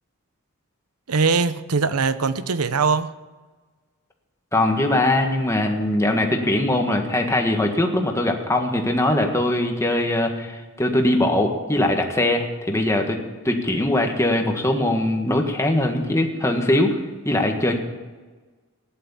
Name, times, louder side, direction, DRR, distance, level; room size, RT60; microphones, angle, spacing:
voice 1, 1.1-3.1, right 4 dB, 85° right, 0.8 m, -21 dB
voice 2, 4.5-13.2 13.4-17.0 17.2-17.8, left 1 dB, 15° left, 1.7 m, -21 dB
16.0 x 11.0 x 7.2 m
head